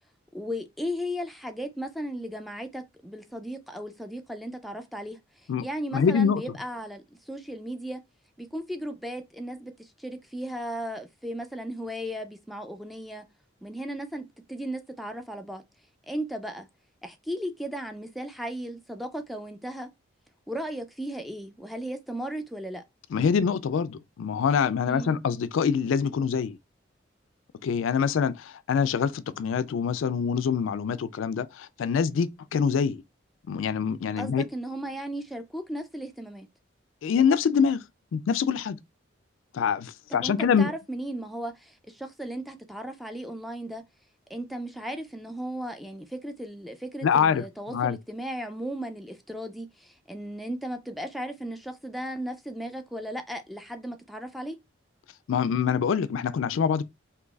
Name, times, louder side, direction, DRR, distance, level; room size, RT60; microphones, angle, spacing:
voice 1, 0.3-8.0 8.4-13.2 13.6-15.6 16.1-16.7 17.0-19.9 20.5-22.8 24.8-25.2 34.2-36.5 40.1-43.8 44.3-54.6, equal, ahead, 0.3 m, -36 dB
voice 2, 5.5-6.4 23.1-26.6 27.6-33.0 33.5-34.5 37.0-37.8 38.1-38.8 39.5-40.7 47.0-47.4 47.7-48.0 55.3-56.8, left 6 dB, 80° left, 0.3 m, -25 dB
3.9 x 2.8 x 2.3 m
head